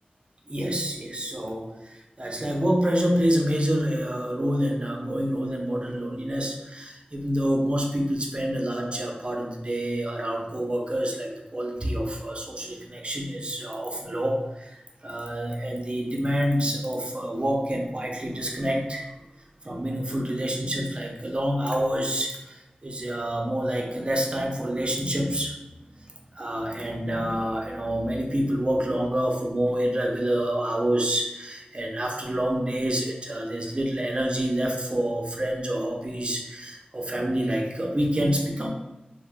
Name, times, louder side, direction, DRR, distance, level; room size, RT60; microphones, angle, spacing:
voice 1, 0.5-14.8 15.0-19.1 19.6-25.5 25.9-38.7, equal, 35° right, 0 dB, 0.5 m, -27 dB
2.7 x 2.0 x 3.4 m, 1.0 s
wide cardioid pair, 70°, 3 cm